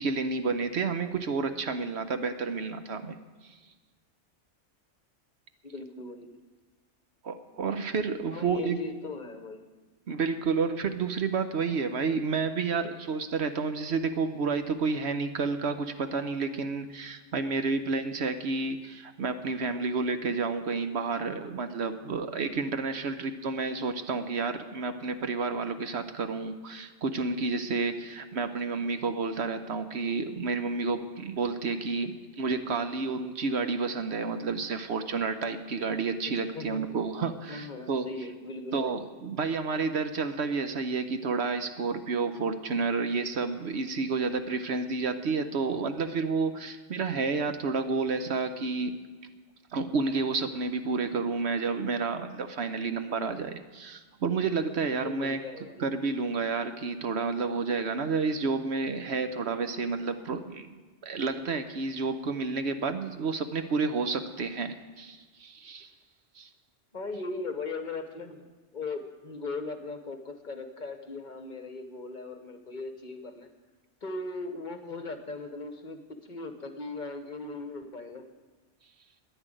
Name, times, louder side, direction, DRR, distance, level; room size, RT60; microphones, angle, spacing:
voice 1, 0.0-3.2 3.4-3.5 7.2-8.8 10.1-38.0 38.7-48.9 49.7-55.4 55.8-60.7 61.0-65.9 66.4-66.5, right 4 dB, 60° right, 9 dB, 1.0 m, -30 dB
voice 2, 5.6-6.3 8.3-9.7 36.5-37.0 37.5-39.0 45.3-45.4 54.9-55.9 66.9-68.5 68.7-73.5 74.0-78.3, left 3 dB, 40° left, 8 dB, 1.0 m, -38 dB
10.0 x 10.0 x 9.0 m, 1.3 s
omnidirectional pair, 1.3 m